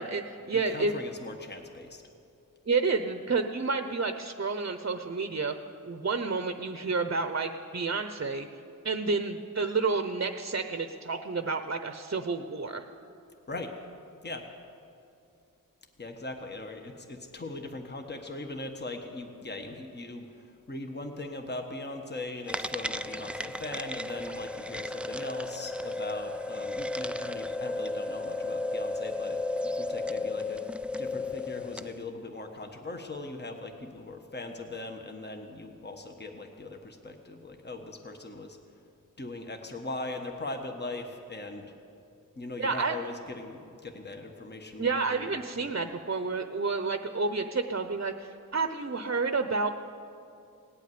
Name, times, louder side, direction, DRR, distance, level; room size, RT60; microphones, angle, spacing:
voice 1, 0.0-0.9 2.7-5.5 5.8-8.5 8.8-12.8 42.6-43.0 44.8-49.7, right 4 dB, 40° right, 8 dB, 0.8 m, -30 dB
voice 2, 0.5-2.0 13.5-13.7 14.2-14.5 16.0-38.6 39.2-41.7 42.4-45.7, left 2 dB, 30° left, 4 dB, 1.3 m, -40 dB
sound 1, 22.5-32.0, left 2 dB, 5° right, 0.3 m, -34 dB
18.0 x 8.4 x 9.5 m, 2.6 s
wide cardioid pair, 80°, 33 cm